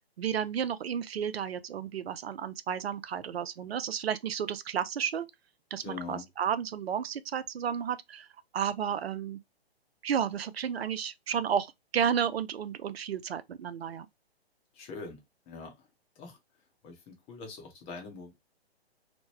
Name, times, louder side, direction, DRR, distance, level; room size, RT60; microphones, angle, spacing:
voice 1, 0.2-5.3 5.7-8.3 8.5-9.4 10.0-14.1, right 8 dB, 70° right, 0.4 m, -32 dB
voice 2, 5.8-6.3 14.7-15.9 16.2-16.4 16.8-18.4, left 4 dB, 20° left, 0.8 m, -43 dB
3.0 x 2.1 x 3.2 m
figure-of-eight pair, 125°, 32 cm